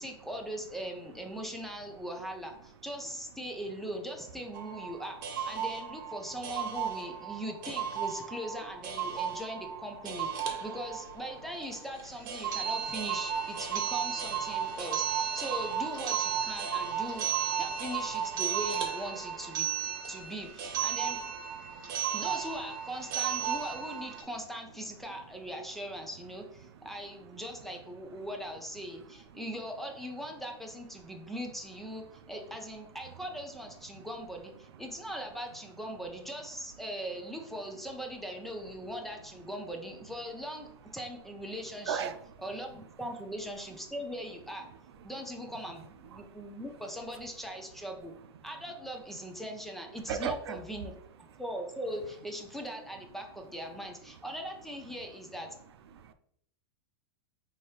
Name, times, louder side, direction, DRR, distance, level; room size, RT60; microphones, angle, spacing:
voice 1, 0.0-5.2 5.5-17.3 17.6-19.7 20.1-21.2 22.1-42.1 42.4-44.7 45.0-48.1 48.4-50.9 51.4-55.5, equal, ahead, 0.4 m, -40 dB
sound 1, 4.5-24.2, right 8 dB, 55° right, 0.8 m, -34 dB
voice 2, 9.1-9.4 16.8-16.9 19.9-20.3 20.9-21.0 21.5-22.2 26.6-26.9 28.2-28.3 29.3-29.4 32.1-32.6 33.9-34.1 41.9-42.3 45.2-45.3 46.1-46.6 48.4-48.5 50.1-50.6 51.3-51.4 55.0-55.1 55.9-56.1, right 7 dB, 85° right, 0.4 m, -40 dB
4.2 x 2.8 x 3.2 m
supercardioid pair, 140°, 13 cm